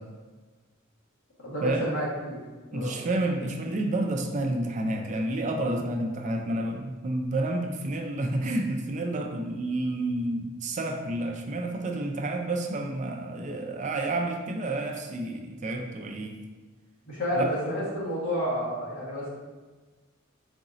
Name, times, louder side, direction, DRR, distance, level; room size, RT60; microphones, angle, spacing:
voice 1, 1.4-2.4 2.7-3.0 17.0-19.3, equal, 65° left, -7 dB, 1.4 m, -30 dB
voice 2, 2.7-16.4 17.4-17.5, right 2 dB, 35° right, 3 dB, 0.4 m, -30 dB
3.9 x 2.6 x 3.8 m, 1.3 s
head